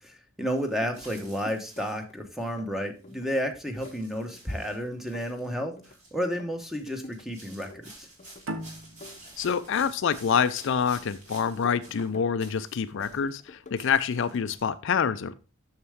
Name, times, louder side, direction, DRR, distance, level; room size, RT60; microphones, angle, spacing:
voice 1, 0.0-5.7 6.1-8.1, equal, ahead, 5 dB, 1.0 m, -31 dB
sound 1, 0.6-2.6 3.0-3.4 3.7-5.6 5.8-6.2 6.6-13.5 13.7-14.7, right 1 dB, 40° right, 3.5 m, -51 dB
sound 2, 0.7-2.1 2.4-3.4 3.7-6.0 6.2-7.3 7.5-8.6 8.8-11.1 11.5-12.5 12.8-13.9 14.1-14.5, left 2 dB, 35° left, 0.7 m, -49 dB
sound 3, 8.4-11.7, right 1 dB, 75° right, 0.9 m, -40 dB
voice 2, 9.4-15.3, left 7 dB, 65° left, 13 dB, 0.4 m, -26 dB
6.9 x 6.6 x 3.5 m, 0.33 s
head